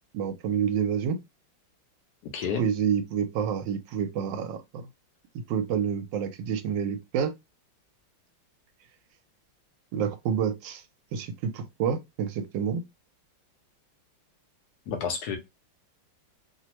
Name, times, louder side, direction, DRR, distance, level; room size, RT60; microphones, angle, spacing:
voice 1, 0.1-1.2 2.6-4.8 5.5-7.3 9.9-10.8 11.1-12.8, right 7 dB, 80° right, 1.2 m, -28 dB
voice 2, 2.3-2.7 14.9-15.4, left 6 dB, 70° left, 1.0 m, -30 dB
3.2 x 2.0 x 2.9 m
omnidirectional pair, 2.0 m